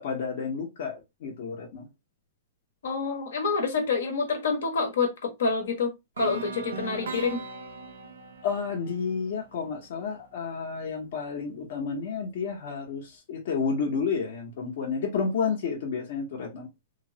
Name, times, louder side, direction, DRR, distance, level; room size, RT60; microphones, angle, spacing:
voice 1, 0.0-1.9 8.4-16.7, left 5 dB, 65° left, 1.0 m, -31 dB
voice 2, 2.8-7.4, left 4 dB, 85° left, 1.2 m, -27 dB
sound 1, 6.2-10.1, right 4 dB, 85° right, 0.6 m, -39 dB
3.1 x 2.1 x 2.7 m
hypercardioid pair, 140°, 0 cm